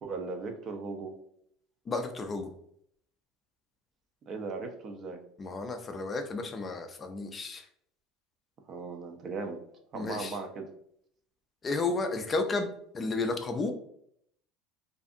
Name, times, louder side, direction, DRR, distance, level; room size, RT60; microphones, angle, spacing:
voice 1, 0.0-1.1 4.3-5.2 8.7-9.6 9.9-10.6, right 4 dB, 40° right, 5 dB, 0.5 m, -37 dB
voice 2, 1.9-2.5 5.4-7.7 9.9-10.4 11.6-12.7 12.9-13.7, left 3 dB, 25° left, 6 dB, 0.3 m, -32 dB
2.5 x 2.4 x 2.5 m, 0.69 s
supercardioid pair, 115°, 0 cm